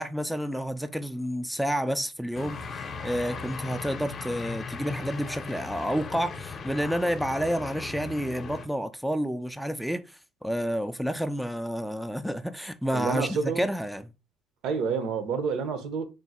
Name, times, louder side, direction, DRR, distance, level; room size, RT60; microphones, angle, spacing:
voice 1, 0.0-14.1, equal, ahead, 0.3 m, -30 dB
sound 1, 2.3-8.7, left 5 dB, 40° left, 0.7 m, -38 dB
voice 2, 12.9-13.7 14.6-16.0, right 5 dB, 70° right, 0.8 m, -28 dB
3.7 x 2.1 x 4.1 m
cardioid pair, 105°, 0 cm